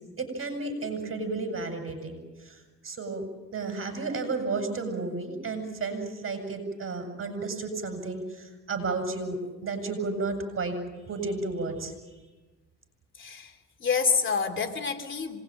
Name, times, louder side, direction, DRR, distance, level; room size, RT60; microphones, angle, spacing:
voice 1, 0.2-10.8 11.1-12.2, right 3 dB, 45° right, 6 dB, 7.7 m, -33 dB
voice 2, 13.2-13.5 13.8-15.4, left 5 dB, 40° left, 4 dB, 3.0 m, -27 dB
26.5 x 21.0 x 9.1 m, 1.2 s
cardioid pair, 90°, 30 cm